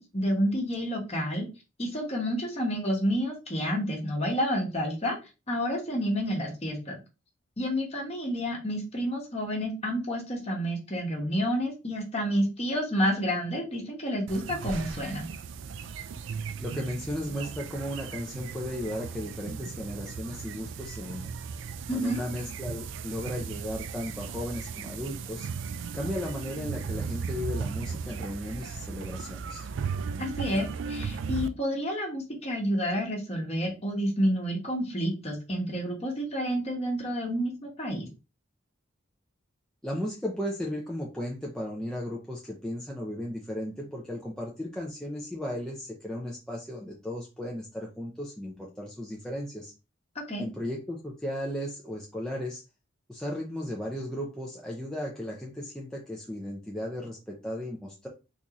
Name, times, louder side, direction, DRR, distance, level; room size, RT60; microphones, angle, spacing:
voice 1, 0.0-1.5 1.8-5.2 5.5-7.0 7.6-15.3 21.9-22.2 30.2-38.1 50.1-50.5, equal, 30° left, 0 dB, 1.1 m, -29 dB
sound 1, 14.3-31.5, right 5 dB, 65° right, 0.3 m, -36 dB
voice 2, 16.6-21.3 21.9-25.5 25.9-29.7 39.8-49.7 50.4-52.6 53.1-58.1, left 1 dB, 5° left, -3 dB, 0.4 m, -35 dB
3.9 x 2.9 x 2.4 m, 0.29 s
head